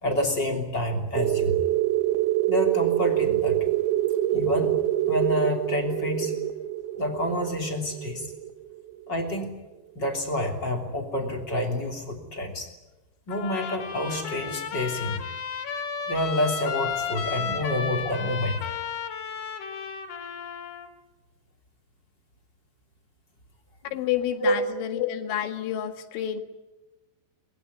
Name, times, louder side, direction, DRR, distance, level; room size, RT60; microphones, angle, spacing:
voice 1, 0.0-1.6 2.5-3.6 4.3-4.8 5.1-6.3 7.0-8.3 9.1-9.5 9.9-12.7 13.3-15.2 16.1-18.6 23.8-24.0 24.4-24.6, left 1 dB, 25° left, 2 dB, 3.1 m, -28 dB
sound 1, 1.2-9.5, right 13 dB, 85° right, 3.6 m, -26 dB
Trumpet, 13.3-20.9, left 6 dB, 60° left, 4.0 m, -33 dB
voice 2, 23.9-26.4, left 11 dB, 85° left, 7 dB, 4.2 m, -29 dB
23.5 x 21.5 x 9.6 m, 1.1 s
omnidirectional pair, 5.3 m